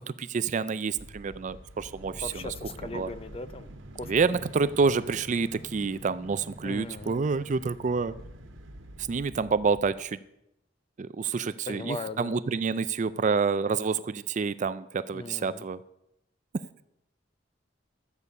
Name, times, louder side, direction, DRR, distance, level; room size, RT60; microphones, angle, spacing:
voice 1, 0.1-2.5 2.9-3.1 4.0-8.2 9.0-10.2 11.0-15.8, right 5 dB, 40° right, 15 dB, 0.4 m, -28 dB
sound 1, 0.9-10.0, equal, 85° right, 1.4 m, -46 dB
voice 2, 2.2-3.7 4.0-4.1 6.6-7.2 11.7-12.4 15.1-15.7, left 2 dB, 30° left, 13 dB, 0.5 m, -38 dB
13.0 x 8.3 x 5.3 m, 0.86 s
head